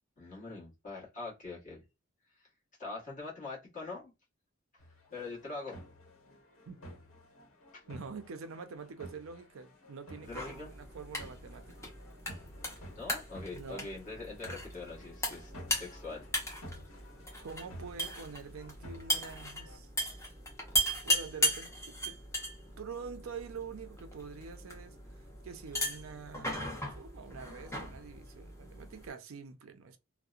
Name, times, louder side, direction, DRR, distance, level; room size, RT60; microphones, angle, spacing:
voice 1, 0.2-1.8 2.8-4.1 5.1-5.8 7.7-7.8 10.2-10.7 12.9-15.5 15.8-16.3, left 3 dB, 35° left, 1.2 m, -43 dB
sound 1, 4.8-19.8, equal, 70° left, 1.1 m, -52 dB
voice 2, 7.9-11.9 13.5-13.9 17.4-19.9 21.0-22.2 22.8-26.5 27.0-30.0, right 5 dB, 70° right, 0.4 m, -46 dB
sound 2, 10.2-29.1, equal, 15° left, 0.6 m, -37 dB
2.7 x 2.0 x 2.3 m
head